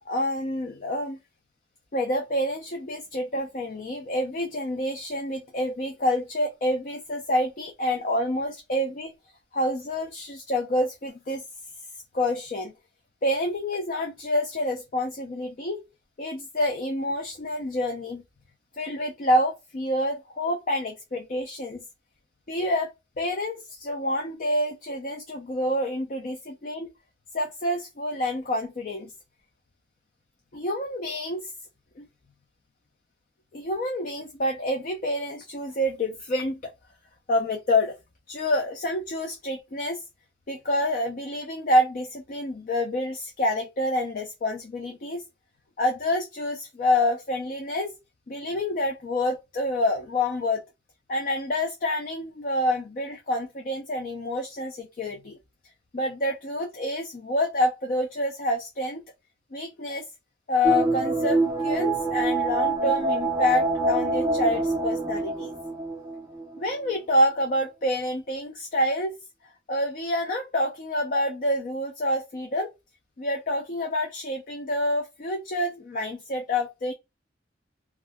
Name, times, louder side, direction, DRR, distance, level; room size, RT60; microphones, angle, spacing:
voice 1, 0.1-1.2 1.9-9.1 9.5-11.4 12.1-12.7 13.2-15.8 16.2-18.2 18.8-21.8 22.5-22.9 23.2-26.9 27.3-29.1 30.5-31.5 32.0-32.1 33.5-36.7 37.3-37.9 38.3-40.0 40.5-45.2 45.8-47.9 48.3-50.6 51.1-55.4 55.9-59.0 59.5-60.1 60.5-65.5 66.6-69.2 69.7-72.7 73.2-76.9, left 1 dB, 45° left, 0.4 m, -27 dB
sound 1, 60.6-66.6 66.9-67.0, right 2 dB, 15° right, 0.5 m, -26 dB
2.4 x 2.2 x 3.3 m
head